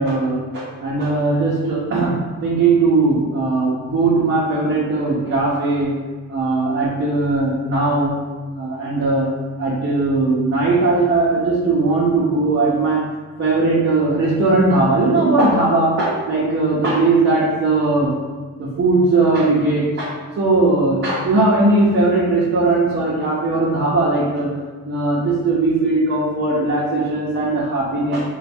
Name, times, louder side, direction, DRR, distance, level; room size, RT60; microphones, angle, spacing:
voice 1, 0.0-2.1 2.4-5.9 6.3-8.1 8.4-9.3 9.6-13.0 13.4-18.1 18.6-20.1 20.4-24.5 24.8-28.2, right 3 dB, 40° right, -7 dB, 0.8 m, -18 dB
3.8 x 2.3 x 4.2 m, 1.4 s
cardioid pair, 110°, 33 cm